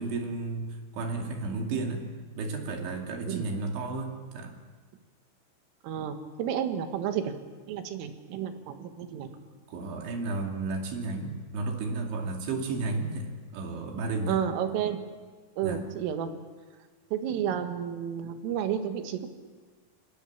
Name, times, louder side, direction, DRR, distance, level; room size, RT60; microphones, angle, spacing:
voice 1, 0.0-2.1 2.4-4.5 9.1-9.3 9.7-14.4 15.6-15.9, right 3 dB, 70° right, 2 dB, 4.7 m, -33 dB
voice 2, 5.8-7.3 7.7-9.3 14.3-15.0 15.6-16.3 17.1-19.3, right 9 dB, 90° right, 7 dB, 4.2 m, -31 dB
27.5 x 19.5 x 7.3 m, 1.5 s
omnidirectional pair, 5.7 m